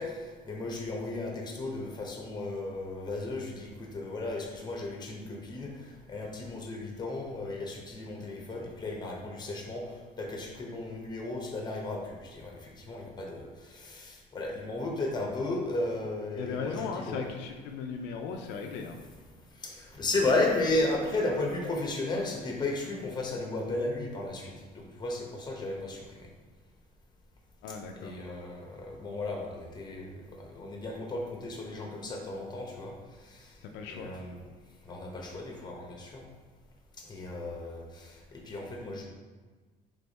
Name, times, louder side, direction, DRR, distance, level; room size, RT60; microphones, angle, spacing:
voice 1, 0.0-17.2 19.6-26.3 28.0-33.6 33.9-34.4 34.8-36.2 37.0-39.0, left 2 dB, 25° left, 0 dB, 1.0 m, -34 dB
voice 2, 16.4-19.0 27.6-28.2 33.6-34.1, left 5 dB, 85° left, 3 dB, 0.4 m, -37 dB
3.5 x 3.4 x 4.1 m, 1.4 s
cardioid pair, 110°, 17 cm